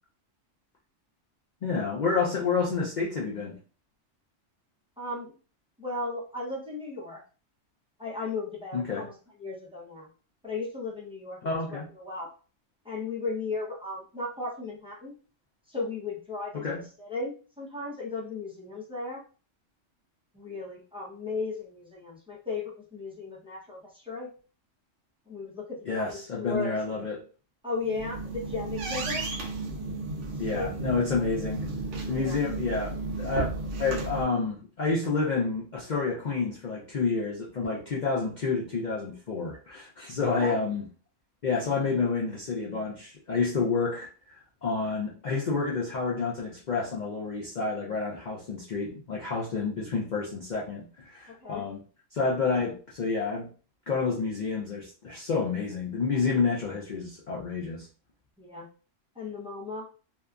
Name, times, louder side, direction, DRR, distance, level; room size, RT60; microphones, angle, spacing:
voice 1, 1.6-3.6 8.7-9.1 11.4-11.9 16.5-16.8 25.9-27.2 30.4-31.6 32.1-33.5 33.8-40.8 41.4-51.8 52.1-53.5 53.9-57.9, left 4 dB, 55° left, -3 dB, 0.5 m, -29 dB
voice 2, 5.0-5.3 5.8-7.2 8.0-10.1 10.4-12.3 12.8-15.2 15.7-16.7 17.0-19.2 20.3-24.3 25.3-27.1 27.6-29.3 30.5-31.3 32.1-32.4 40.2-40.6 51.3-51.7 58.4-58.7 59.1-59.9, left 3 dB, 5° right, -5 dB, 0.5 m, -36 dB
sound 1, 27.7-34.2, right 3 dB, 70° right, 0.9 m, -34 dB
2.7 x 2.3 x 2.3 m, 0.37 s
omnidirectional pair, 1.3 m